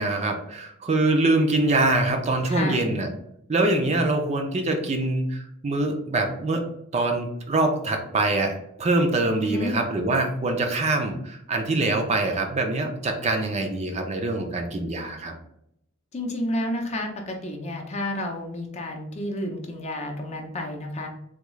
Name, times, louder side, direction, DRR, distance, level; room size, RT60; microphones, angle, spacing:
voice 1, 0.0-3.1 3.5-6.6 6.9-15.3, right 2 dB, 30° right, 4 dB, 0.4 m, -24 dB
voice 2, 2.5-2.9 9.4-9.7 16.1-21.1, left 1 dB, 30° left, 2 dB, 0.5 m, -30 dB
3.5 x 2.3 x 3.1 m, 0.76 s
head